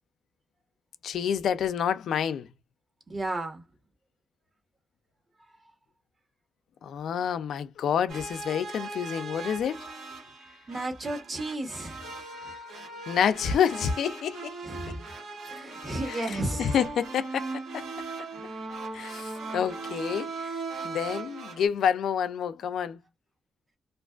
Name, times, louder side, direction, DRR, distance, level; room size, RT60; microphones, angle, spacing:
voice 1, 1.0-2.5 6.8-9.9 13.1-14.6 16.0-17.8 18.9-20.5 20.8-23.0, left 8 dB, 80° left, 0.4 m, -28 dB
voice 2, 3.1-3.6 10.7-12.0 14.6-15.0 15.5-16.6 18.4-18.5, right 1 dB, 35° right, 1.1 m, -33 dB
sound 1, 8.1-21.7, right 3 dB, 85° right, 1.3 m, -39 dB
2.4 x 2.3 x 2.3 m
cardioid pair, 90°, 0 cm